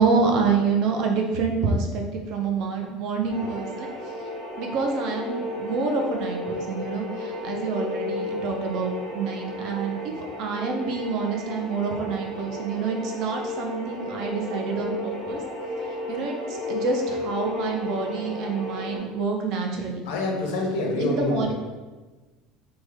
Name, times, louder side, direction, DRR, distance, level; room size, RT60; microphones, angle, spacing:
voice 1, 0.0-3.9 4.6-10.0 10.4-15.4 16.1-20.0 21.0-21.5, right 4 dB, 45° right, 2 dB, 0.4 m, -27 dB
sound 1, 3.3-19.0, left 1 dB, 15° right, 1.0 m, -33 dB
voice 2, 20.1-21.5, left 2 dB, 90° left, 0 dB, 0.7 m, -26 dB
3.3 x 2.1 x 3.3 m, 1.2 s
cardioid pair, 180°, 0 cm